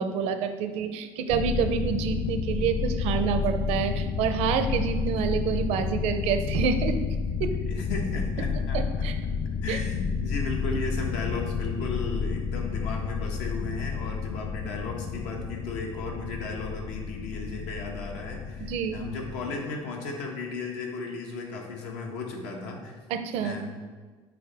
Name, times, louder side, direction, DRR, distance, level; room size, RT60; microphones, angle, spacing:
voice 1, 0.0-7.0 7.4-7.8 8.7-9.2 9.7-9.8 18.7-19.0 23.1-23.5, right 7 dB, 75° right, 9 dB, 0.6 m, -28 dB
sound 1, 1.3-19.6, left 5 dB, 50° left, 0.4 m, -30 dB
voice 2, 7.7-8.8 9.6-23.0 23.4-23.7, left 3 dB, 90° left, 0 dB, 1.3 m, -35 dB
7.7 x 4.9 x 3.4 m, 1.4 s
cardioid pair, 125°, 11 cm